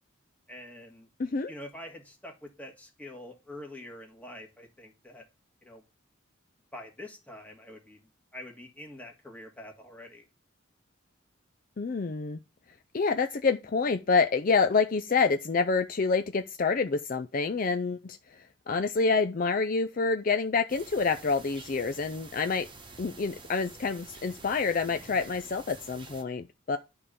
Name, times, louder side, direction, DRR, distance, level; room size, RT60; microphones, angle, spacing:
voice 1, 0.5-1.1 1.5-5.2 5.6-5.8 6.7-8.0 8.3-10.2, left 1 dB, 5° left, 1.7 m, -45 dB
voice 2, 1.2-1.5 11.8-12.4 12.9-18.2 18.7-22.7 23.0-26.8, left 4 dB, 40° left, 0.4 m, -27 dB
sound 1, 20.7-26.2, right 3 dB, 25° right, 1.1 m, -48 dB
11.0 x 3.7 x 6.7 m
head